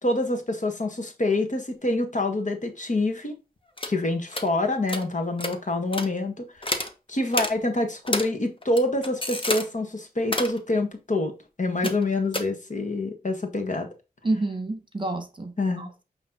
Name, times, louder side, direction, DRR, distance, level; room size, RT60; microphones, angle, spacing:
voice 1, 0.0-3.3 3.9-6.8 7.1-11.3 11.6-13.9 15.6-15.9, left 2 dB, 50° left, 1.6 m, -26 dB
sound 1, 3.8-3.9 4.3-4.5 4.9-5.0 5.4-5.6 5.9-6.1 6.6-6.9 7.3-7.5 8.1-8.3 8.6-9.6 10.2-10.6 11.8-12.0 12.3-12.4, left 1 dB, 35° left, 1.2 m, -28 dB
voice 2, 14.2-16.0, right 2 dB, 30° right, 1.4 m, -29 dB
8.3 x 3.3 x 4.0 m
cardioid pair, 55°, 16 cm